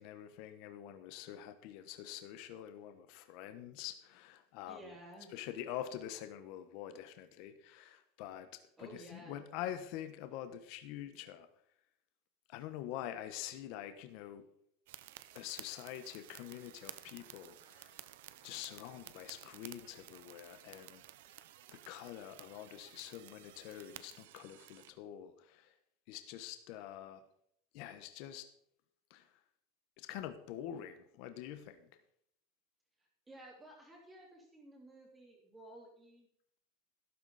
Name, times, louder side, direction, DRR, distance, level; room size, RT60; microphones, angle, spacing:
voice 1, 0.0-4.9 5.3-8.5 8.8-11.5 12.5-14.4 15.3-18.1 18.4-21.0 21.7-25.7 26.1-27.2 27.7-28.5 29.1-29.4 30.0-31.9, left 11 dB, 40° left, 9 dB, 1.1 m, -46 dB
voice 2, 4.7-5.3 8.8-9.4 33.0-36.3, right 1 dB, 10° right, -1 dB, 3.3 m, -54 dB
sound 1, 14.9-24.9, right 14 dB, 60° right, 0.8 m, -54 dB
13.0 x 12.5 x 4.2 m, 0.68 s
supercardioid pair, 180°, 0 cm